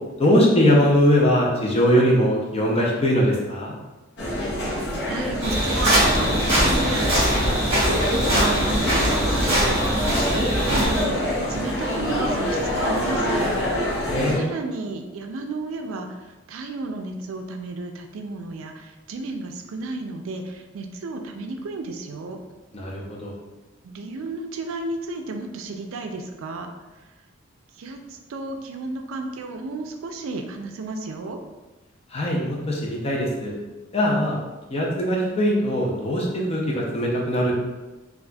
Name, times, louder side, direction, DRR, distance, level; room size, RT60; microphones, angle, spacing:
voice 1, 0.2-3.7 14.1-14.5 22.7-23.3 32.1-33.5 33.9-34.4 34.7-37.5, equal, 30° left, -2 dB, 0.6 m, -21 dB
sound 1, 4.2-14.4, equal, 55° left, 0.9 m, -25 dB
voice 2, 5.1-7.1 7.4-13.5 14.4-22.4 23.8-26.7 27.8-31.4, right 3 dB, 80° right, 5 dB, 0.4 m, -33 dB
sound 2, 5.4-11.0, equal, 30° right, 1.4 m, -22 dB
4.0 x 2.4 x 2.3 m, 1.1 s
head